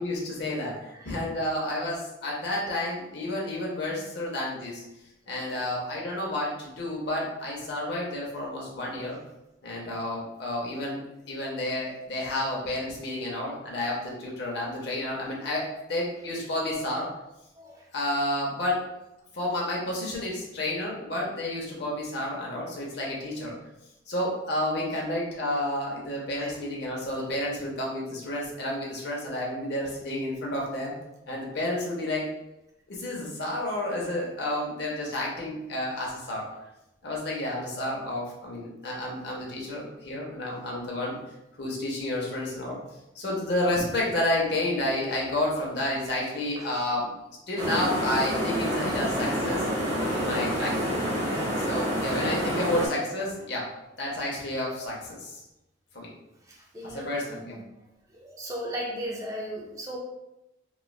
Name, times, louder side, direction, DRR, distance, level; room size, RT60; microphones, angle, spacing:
voice 1, 0.0-4.8 5.3-9.2 9.6-11.0 11.3-17.1 17.9-18.8 19.3-23.5 24.1-31.0 31.3-32.2 32.9-36.5 37.0-41.2 41.6-42.8 43.1-47.1 47.5-49.7 50.1-50.8 51.6-53.7 54.0-55.4 55.9-56.1 56.8-57.6, left 1 dB, 55° left, -4 dB, 0.7 m, -30 dB
voice 2, 5.2-5.6 8.9-9.0 9.9-10.1 13.1-13.3 14.5-14.6 17.6-17.9 22.8-23.0 24.9-25.0 26.4-26.6 46.6-46.7 50.9-51.3 52.1-52.3 56.4-60.0, equal, 15° right, -2 dB, 0.4 m, -39 dB
sound 1, 47.6-52.9, equal, 35° right, 0.9 m, -28 dB
3.0 x 2.3 x 2.3 m, 0.92 s
head